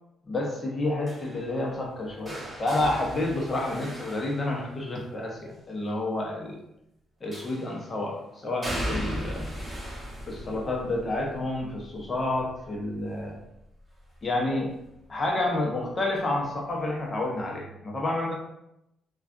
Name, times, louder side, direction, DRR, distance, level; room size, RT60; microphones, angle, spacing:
voice 1, 0.3-6.6 7.2-9.5 10.3-13.3 14.2-14.7 15.1-18.3, left 2 dB, 35° left, -1 dB, 0.8 m, -29 dB
sound 1, 1.1-5.1 7.3-7.9 8.6-14.4 14.8-15.2 16.4-16.5, equal, 20° right, 1.3 m, -38 dB
3.3 x 2.3 x 2.5 m, 0.85 s
cardioid pair, 90°, 0 cm